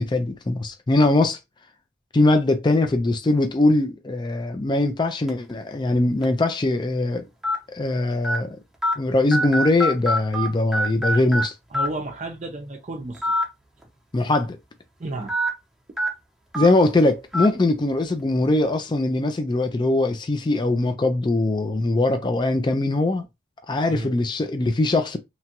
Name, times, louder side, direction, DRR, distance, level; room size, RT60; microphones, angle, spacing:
voice 1, 0.0-1.4 2.1-7.3 7.7-8.6 9.0-11.5 14.1-14.6 16.5-23.3 23.7-25.2, left 2 dB, 25° left, 0.3 m, -21 dB
sound 1, 5.3-5.5 6.2-6.3 7.4-7.6 8.2-8.4 8.8-8.9 9.3-10.5 10.7-11.4 11.7-11.9 13.1-13.4 13.8-13.9 15.3-15.5 16.0-16.1 16.5-16.7 17.3-17.5, equal, ahead, 0.7 m, -23 dB
voice 2, 11.7-13.3 15.0-15.3 23.9-24.1, right 2 dB, 35° right, 0.5 m, -32 dB
2.9 x 2.3 x 2.8 m
head